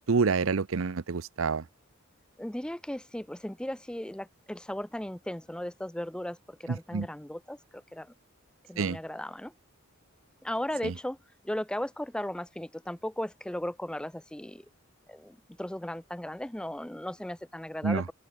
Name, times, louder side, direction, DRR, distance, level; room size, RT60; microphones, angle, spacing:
voice 1, 0.0-1.6 6.7-7.1 8.8-9.0 10.8-10.9 17.8-18.1, right 4 dB, 70° right, 0.6 m, -28 dB
voice 2, 2.4-8.1 8.7-9.5 10.4-11.2 11.4-14.7 15.1-18.0, left 1 dB, 5° left, 0.4 m, -36 dB
open air
head